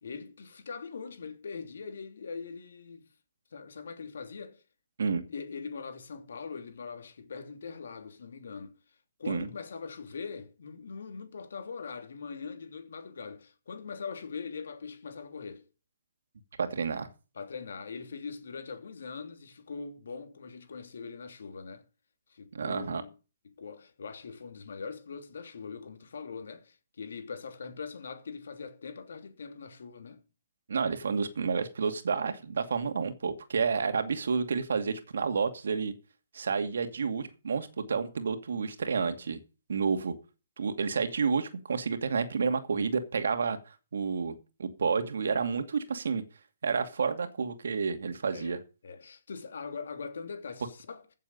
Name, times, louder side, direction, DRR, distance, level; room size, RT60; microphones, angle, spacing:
voice 1, 0.0-3.1 3.5-4.6 5.3-8.7 9.2-15.6 17.3-21.9 22.3-23.1 23.6-30.2 33.7-33.8 48.3-48.6 48.8-51.0, left 5 dB, 70° left, 3.1 m, -42 dB
voice 2, 16.6-17.1 22.5-23.0 30.7-35.9 36.3-39.4 39.7-40.1 40.6-44.3 44.6-46.2 46.6-48.6, right 5 dB, 75° right, 2.4 m, -30 dB
15.5 x 7.5 x 5.4 m
hypercardioid pair, 140°, 0 cm